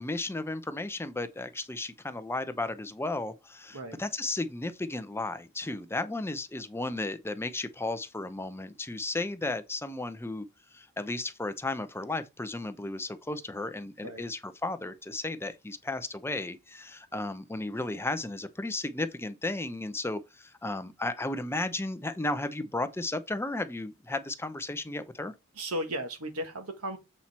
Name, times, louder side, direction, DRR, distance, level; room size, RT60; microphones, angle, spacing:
voice 1, 0.0-10.5 10.7-25.3, left 2 dB, 10° left, 0.6 m, -34 dB
voice 2, 25.6-27.0, right 1 dB, 80° right, 1.7 m, -35 dB
7.7 x 4.3 x 4.3 m
head